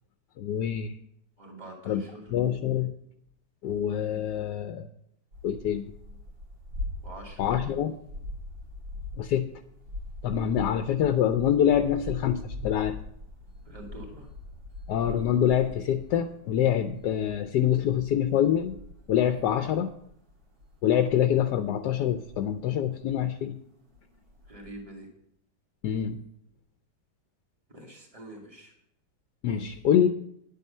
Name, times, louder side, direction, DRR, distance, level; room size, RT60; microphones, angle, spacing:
voice 1, 0.4-0.9 1.9-2.0 2.3-2.9 3.6-4.9 5.4-5.9 7.4-7.9 9.2-9.5 10.2-13.0 14.9-18.8 19.1-19.9 20.8-23.6 25.8-26.2 29.4-30.1, left 9 dB, 75° left, 8 dB, 1.2 m, -25 dB
voice 2, 1.4-2.3 7.0-7.4 13.6-14.3 24.5-25.1 27.7-28.7, right 1 dB, 20° right, -1 dB, 2.4 m, -45 dB
sound 1, 5.3-23.1 23.5-23.6 23.9-24.8, left 2 dB, 75° right, 2.9 m, -42 dB
10.0 x 9.3 x 5.4 m, 0.74 s
omnidirectional pair, 2.0 m